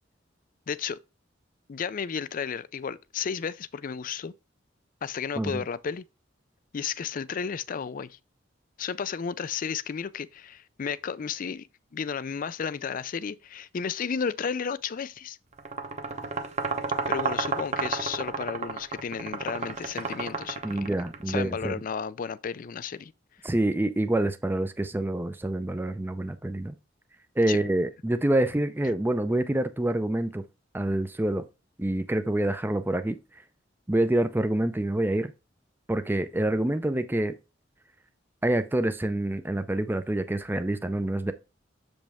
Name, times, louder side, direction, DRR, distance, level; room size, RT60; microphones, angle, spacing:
voice 1, 0.7-1.0 1.7-4.3 5.0-6.0 6.7-8.2 8.8-15.4 17.1-20.9 21.3-23.1 23.4-23.5 27.5-27.6, left 6 dB, 45° left, 0.4 m, -33 dB
sound 1, 15.6-21.3, right 4 dB, 35° right, 0.9 m, -32 dB
voice 2, 20.6-21.7 23.4-26.7 27.4-30.4 30.7-31.4 31.8-33.2 33.9-35.3 35.9-37.3 38.4-41.3, right 1 dB, 10° right, 0.5 m, -26 dB
7.3 x 5.2 x 3.5 m
head